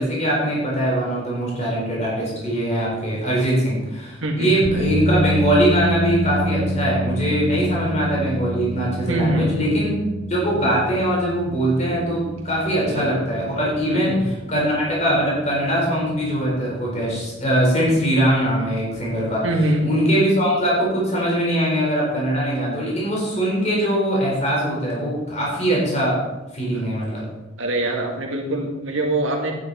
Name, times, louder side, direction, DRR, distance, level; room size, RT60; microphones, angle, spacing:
voice 1, 0.0-9.9 10.3-14.1 14.5-19.4 19.8-26.2 26.5-27.2, right 1 dB, 35° left, -4 dB, 4.3 m, -21 dB
voice 2, 4.2-4.6 9.1-9.5 12.7-13.2 13.9-14.2 19.4-19.9 26.7-26.9 27.6-29.5, right 1 dB, 70° right, 1 dB, 1.7 m, -24 dB
sound 1, 4.6-18.9, equal, 65° left, 2.1 m, -28 dB
11.5 x 10.0 x 4.2 m, 1.1 s
head